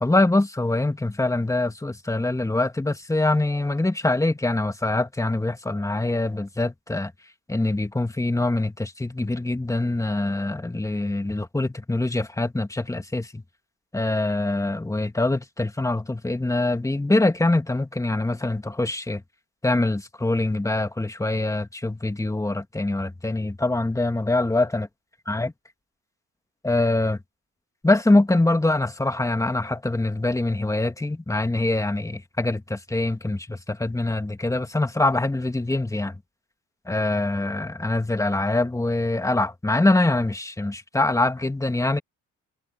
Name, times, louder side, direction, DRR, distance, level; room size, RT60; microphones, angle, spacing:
voice 1, 0.0-7.1 7.5-13.4 13.9-19.2 19.6-24.9 25.3-25.5 26.6-27.2 27.8-36.2 36.9-42.0, left 2 dB, 10° left, 2.0 m, -24 dB
cardioid pair, 90°, 30 cm